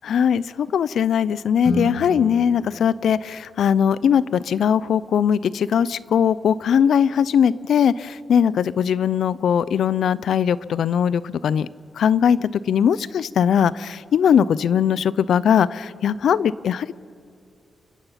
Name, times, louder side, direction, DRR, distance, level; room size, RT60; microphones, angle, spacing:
voice 1, 0.1-11.7 12.0-16.9, left 8 dB, 85° left, 19 dB, 0.5 m, -20 dB
Guitar, 1.6-4.2, left 1 dB, 55° left, 2.4 m, -32 dB
29.5 x 16.0 x 5.8 m, 2.3 s
wide cardioid pair, 165°, 0 cm